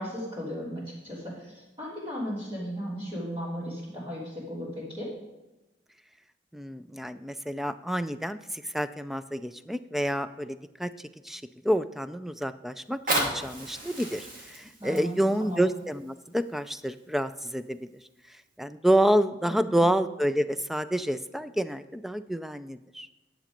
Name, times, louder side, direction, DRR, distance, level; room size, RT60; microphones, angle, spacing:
voice 1, 0.0-5.1 14.8-15.6 19.5-19.9, equal, 30° right, -10 dB, 3.3 m, -36 dB
voice 2, 6.5-17.9 18.6-23.1, right 1 dB, ahead, 12 dB, 0.3 m, -28 dB
Fire, 12.8-17.8 18.4-18.5, right 1 dB, 50° right, 2.2 m, -35 dB
10.0 x 7.6 x 5.1 m, 1.0 s
head